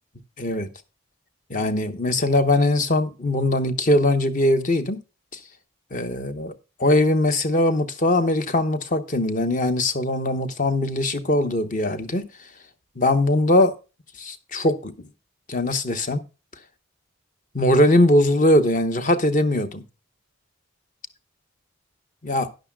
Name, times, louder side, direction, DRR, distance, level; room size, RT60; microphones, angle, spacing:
voice 1, 0.4-0.7 1.5-5.0 5.3-5.4 5.9-6.5 6.8-12.3 13.0-13.7 14.2-14.9 15.5-16.2 17.5-19.8 22.2-22.5, left 1 dB, 40° left, 0.9 m, -21 dB
13.0 x 10.5 x 2.3 m
head